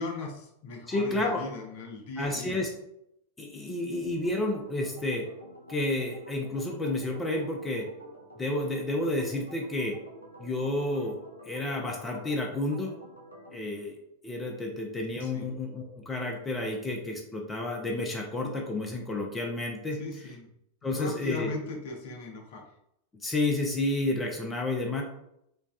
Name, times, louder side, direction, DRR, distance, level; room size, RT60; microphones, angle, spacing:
voice 1, 0.0-2.6 15.2-15.5 19.9-20.5 20.9-22.7, left 3 dB, 50° left, 2 dB, 0.7 m, -38 dB
voice 2, 0.9-1.4 2.2-2.7 3.4-5.2 5.7-7.9 8.4-10.0 10.4-12.9 13.5-14.0 14.2-20.0 20.8-21.5 23.2-25.0, left 2 dB, 15° left, 1 dB, 0.6 m, -30 dB
Organ, 4.2-13.6, equal, 85° left, 0.6 m, -49 dB
4.5 x 2.3 x 2.4 m, 0.78 s
figure-of-eight pair, 90°, 0 cm